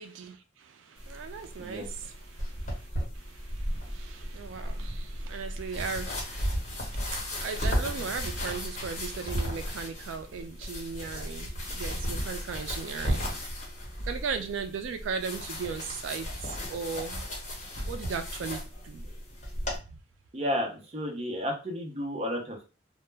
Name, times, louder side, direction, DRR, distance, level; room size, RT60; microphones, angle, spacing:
voice 1, 0.0-13.3 14.0-17.2 17.9-19.1, right 5 dB, 90° right, 0.3 m, -37 dB
sound 1, 1.0-19.8, equal, 40° left, 1.0 m, -35 dB
voice 2, 20.3-22.6, equal, 35° right, 0.6 m, -32 dB
2.1 x 2.0 x 3.2 m
head